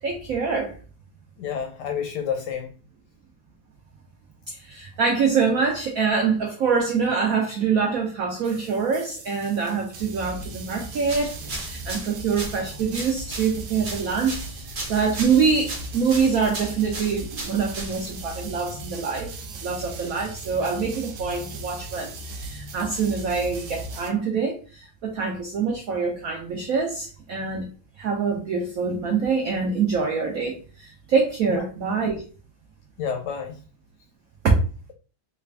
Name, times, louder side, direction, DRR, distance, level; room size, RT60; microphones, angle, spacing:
voice 1, 0.0-0.7 4.5-19.3 19.6-27.7 28.0-32.2 34.4-34.5, right 5 dB, 85° right, 1 dB, 0.7 m, -25 dB
voice 2, 1.4-2.7 31.5-31.6 33.0-33.6, left 7 dB, 75° left, 4 dB, 1.0 m, -29 dB
sound 1, 8.4-24.1, right 2 dB, 70° right, 1.1 m, -38 dB
sound 2, 11.0-18.3, right 1 dB, 45° right, 0.9 m, -36 dB
3.3 x 2.5 x 3.2 m, 0.39 s
omnidirectional pair, 2.2 m